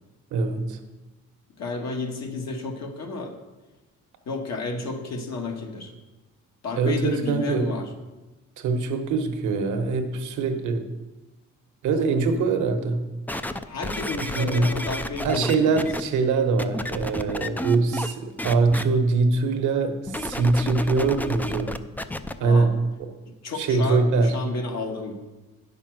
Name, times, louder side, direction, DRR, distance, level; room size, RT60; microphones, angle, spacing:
voice 1, 0.3-0.8 6.8-7.7 8.6-10.9 11.8-13.0 14.2-14.7 15.2-21.7 22.4-22.7 23.0-23.1 23.5-24.3, right 4 dB, 75° right, 5 dB, 1.2 m, -23 dB
voice 2, 1.6-3.3 4.2-5.9 6.6-7.9 13.6-15.8 22.4-22.7 23.4-25.1, left 3 dB, 60° left, 2 dB, 1.6 m, -31 dB
sound 1, 13.3-16.0 16.6-18.1 18.4-18.8 20.1-22.3 23.0-23.1, left 1 dB, 5° left, 0.4 m, -31 dB
8.9 x 5.6 x 6.2 m, 1.1 s
cardioid pair, 90°, 30 cm